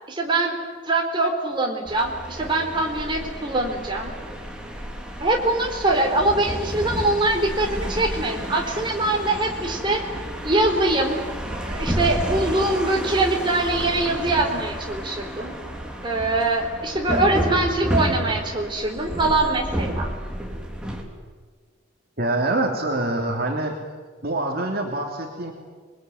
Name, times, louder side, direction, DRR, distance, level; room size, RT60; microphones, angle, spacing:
voice 1, 0.1-0.6 0.8-4.1 5.2-10.0 10.4-11.2 11.6-15.5 16.0-20.1, right 2 dB, 25° right, 1 dB, 4.0 m, -23 dB
sound 1, 1.9-21.0, equal, 5° right, 3.2 m, -31 dB
voice 2, 22.2-23.8 24.2-25.5, right 2 dB, 50° right, 1 dB, 3.0 m, -25 dB
27.0 x 21.5 x 9.6 m, 1.5 s
head